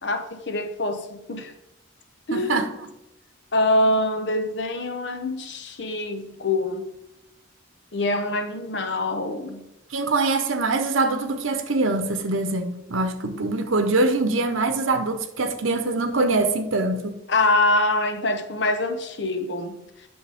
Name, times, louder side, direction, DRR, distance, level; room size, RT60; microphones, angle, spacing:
voice 1, 0.0-1.5 2.3-2.7 3.5-6.9 7.9-9.7 17.3-19.8, left 2 dB, 60° left, 0.8 m, -24 dB
voice 2, 2.3-2.7 9.9-17.2, right 3 dB, 80° right, 0.9 m, -23 dB
8.5 x 6.4 x 3.5 m
head